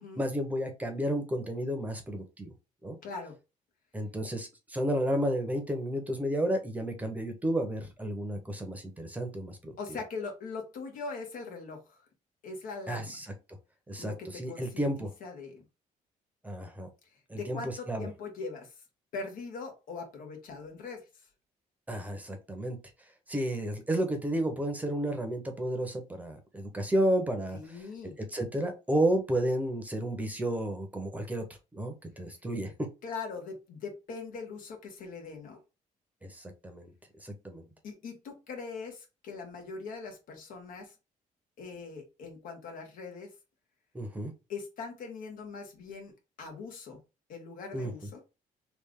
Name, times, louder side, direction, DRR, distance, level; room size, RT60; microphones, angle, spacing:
voice 1, 0.2-2.5 2.8-3.0 3.9-9.7 12.9-13.3 13.9-15.1 16.4-16.9 17.3-18.1 21.9-22.8 23.3-27.6 28.0-31.4 31.7-32.7 36.2-36.9 37.2-37.7 43.9-44.3 47.7-47.9, right 1 dB, 10° right, 5 dB, 0.8 m, -32 dB
voice 2, 3.0-3.4 9.8-12.0 12.4-13.2 14.0-15.6 17.4-18.7 19.1-21.3 27.5-28.2 33.0-35.6 37.8-40.9 41.6-43.3 44.5-46.1 46.4-47.0 47.3-48.2, left 4 dB, 75° left, 3 dB, 1.4 m, -41 dB
3.3 x 2.4 x 3.6 m, 0.27 s
cardioid pair, 125°, 14 cm